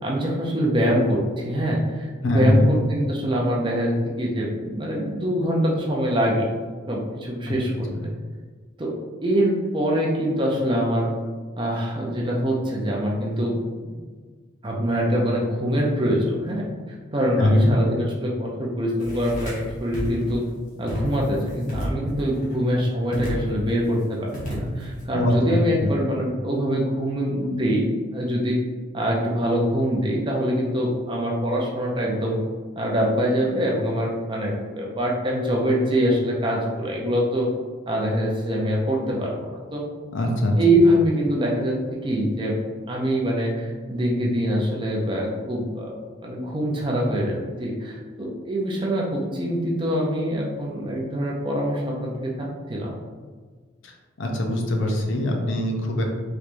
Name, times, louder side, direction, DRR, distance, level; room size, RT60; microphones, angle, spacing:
voice 1, 0.0-6.5 6.9-7.9 8.8-8.9 9.2-11.1 11.6-13.6 13.8-13.9 14.6-16.7 17.1-20.5 20.8-28.6 28.9-32.4 32.8-37.5 37.9-39.8 40.6-42.6 42.9-45.9 46.2-53.0, equal, 25° right, -2 dB, 0.5 m, -24 dB
voice 2, 2.2-2.7 7.5-7.6 17.4-17.7 25.1-25.3 25.8-25.9 40.1-40.5 54.2-56.0, left 1 dB, 65° left, 1 dB, 0.5 m, -21 dB
sound 1, 19.0-19.7 19.9-20.3 20.9-21.4 21.7-22.5 23.1-23.7 24.3-25.0, equal, 40° left, 0.9 m, -31 dB
3.3 x 3.0 x 2.5 m, 1.5 s
head